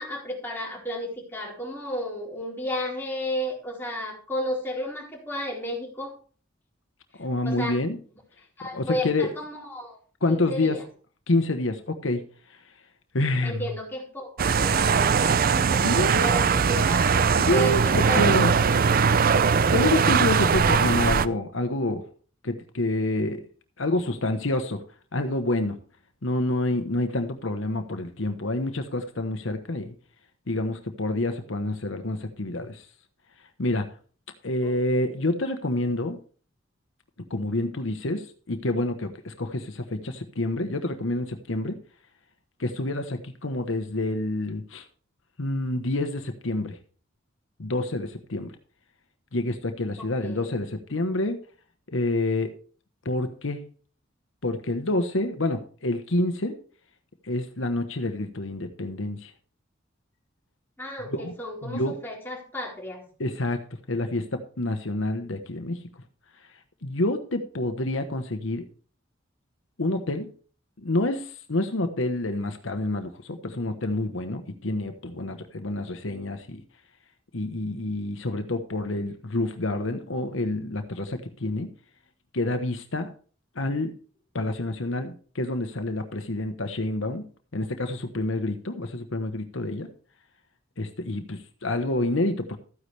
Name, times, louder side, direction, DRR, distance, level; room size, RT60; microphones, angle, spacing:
voice 1, 0.0-6.1 7.4-7.8 8.6-10.0 10.3-10.8 13.4-15.8 16.2-17.7 18.1-19.0 34.6-34.7 50.0-50.5 60.8-63.0, equal, 10° left, -3 dB, 4.2 m, -33 dB
voice 2, 7.2-8.0 8.6-9.3 10.2-10.8 11.3-12.2 12.5-12.6 13.1-13.7 15.8-16.3 17.4-18.5 19.7-22.0 22.4-23.4 23.8-24.8 25.1-25.8 26.2-29.9 30.5-32.9 33.6-33.9 34.4-36.2 37.3-41.8 42.6-44.8 45.4-46.8 47.6-48.5 49.3-51.4 51.9-52.5 53.0-53.6 54.4-56.6 57.2-59.3 61.0-61.3 61.6-62.0 63.2-63.6 63.9-65.8 66.8-68.7 69.8-70.3 70.8-76.6 77.3-81.7 82.3-83.1 83.5-83.9 84.3-87.3 87.5-89.9 90.8-92.6, left 2 dB, 80° left, 7 dB, 1.1 m, -28 dB
sound 1, 14.4-21.3, right 6 dB, 45° right, 0.5 m, -21 dB
14.0 x 9.7 x 3.3 m, 0.41 s
head